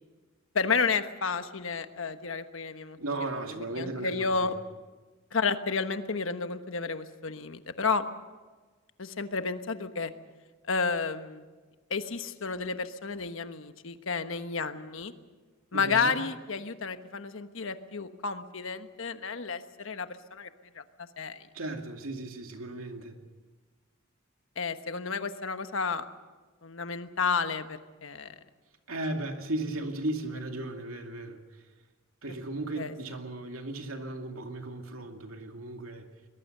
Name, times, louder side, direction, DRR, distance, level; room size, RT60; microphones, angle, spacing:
voice 1, 0.5-3.0 3.8-4.5 5.3-8.1 9.0-10.1 10.7-11.5 11.9-15.1 15.7-20.5 20.7-21.5 24.6-26.0 26.6-28.3 32.8-32.9, left 5 dB, 70° left, 9 dB, 1.2 m, -31 dB
voice 2, 3.0-4.5 15.7-16.2 21.5-23.2 28.9-31.7 32.2-36.1, right 2 dB, 90° right, 4 dB, 2.5 m, -36 dB
22.5 x 21.0 x 6.7 m, 1.3 s
head